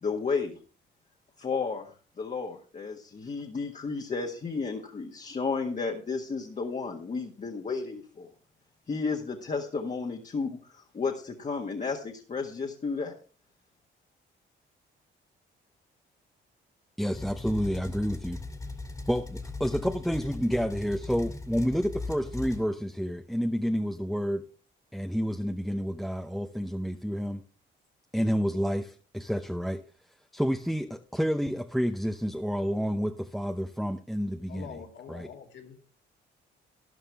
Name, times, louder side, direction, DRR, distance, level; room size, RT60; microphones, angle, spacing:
voice 1, 0.0-0.6 1.4-8.3 8.9-13.1, left 4 dB, 35° left, 1 dB, 1.7 m, -33 dB
voice 2, 17.0-18.4 19.1-24.4 24.9-27.4 28.1-29.8 30.3-34.7 35.1-35.3, equal, ahead, 5 dB, 0.8 m, -29 dB
sound 1, 17.1-22.7, left 3 dB, 15° left, 2.0 m, -39 dB
voice 3, 34.5-35.8, left 7 dB, 65° left, 3 dB, 2.6 m, -44 dB
13.0 x 11.0 x 3.5 m, 0.38 s
cardioid pair, 90°, 20 cm